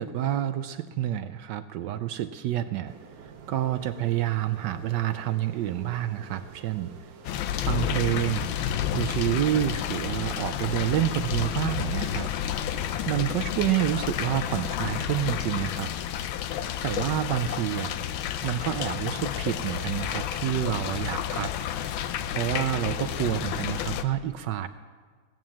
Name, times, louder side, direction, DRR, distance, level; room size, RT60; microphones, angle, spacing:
voice 1, 0.0-6.9 7.6-8.5 8.9-12.3 13.1-15.9 16.8-18.0 18.4-21.5 22.3-24.7, right 12 dB, 75° right, 11 dB, 1.0 m, -28 dB
sound 1, 2.9-12.9, right 6 dB, 55° right, 1.2 m, -49 dB
sound 2, 7.2-24.0, left 10 dB, 80° left, 1.4 m, -30 dB
17.0 x 9.1 x 7.2 m, 1.5 s
omnidirectional pair, 2.3 m